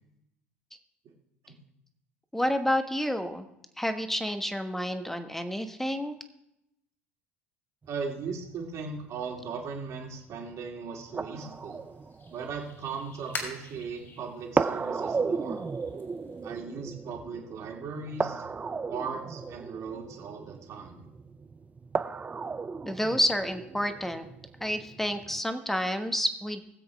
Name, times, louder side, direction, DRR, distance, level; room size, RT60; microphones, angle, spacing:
voice 1, 2.3-3.5 3.8-6.2 22.9-24.2 24.6-26.6, equal, 5° left, 8 dB, 1.2 m, -29 dB
sound 1, 7.8-25.4, right 4 dB, 20° right, 0.6 m, -36 dB
voice 2, 7.9-11.8 12.3-15.6 16.4-18.4 18.9-21.1, right 5 dB, 50° right, 0 dB, 2.4 m, -38 dB
sound 2, 11.4-16.6, left 3 dB, 35° left, 3.7 m, -45 dB
20.5 x 7.8 x 3.5 m, 0.83 s
hypercardioid pair, 70°, 7 cm